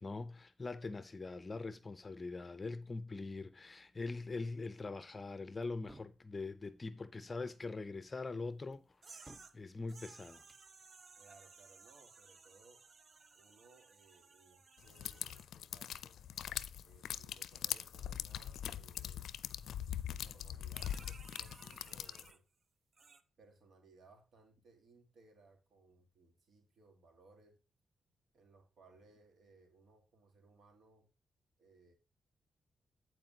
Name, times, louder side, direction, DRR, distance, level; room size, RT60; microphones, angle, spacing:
voice 1, 0.0-9.2 9.5-10.4, left 3 dB, 30° left, 0.6 m, -43 dB
sound 1, 5.6-6.2 7.3-7.7 8.7-9.6 10.3-10.7, right 1 dB, 15° right, 0.9 m, -59 dB
sound 2, 9.0-9.6 9.9-15.5 20.7-22.4 22.9-23.2, right 4 dB, 50° right, 0.9 m, -59 dB
voice 2, 11.2-12.8 13.3-16.2 16.8-19.3 20.2-22.4 23.4-27.6 28.3-31.1 31.6-31.9, right 3 dB, 65° right, 3.1 m, -65 dB
sound 3, 14.9-22.3, left 10 dB, 80° left, 0.4 m, -42 dB
14.5 x 4.8 x 2.8 m
cardioid pair, 70°, 0 cm